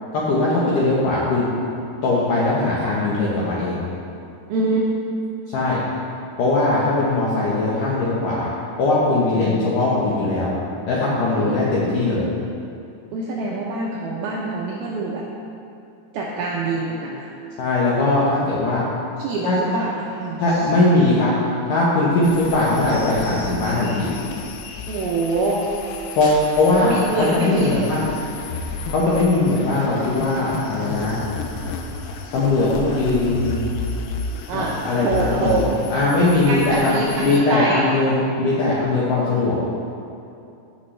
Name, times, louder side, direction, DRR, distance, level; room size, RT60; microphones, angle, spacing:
voice 1, 0.1-1.5 2.0-3.8 5.5-5.8 6.4-8.5 8.8-10.5 10.9-12.3 17.6-18.8 19.4-19.6 20.4-24.1 26.2-26.9 27.3-28.0 28.9-31.2 31.6-31.7 32.3-33.7 34.5-35.6 35.9-39.6, left 2 dB, 75° left, -7 dB, 2.0 m, -20 dB
voice 2, 4.5-4.9 9.3-9.8 11.4-11.9 13.1-15.2 16.1-17.3 19.2-20.7 24.9-25.6 26.8-27.8 34.5-35.7 36.5-37.8, right 3 dB, 80° right, -3 dB, 2.2 m, -25 dB
sound 1, 22.2-37.4, left 4 dB, 90° left, 3.0 m, -33 dB
15.5 x 6.3 x 3.2 m, 2.7 s
omnidirectional pair, 5.3 m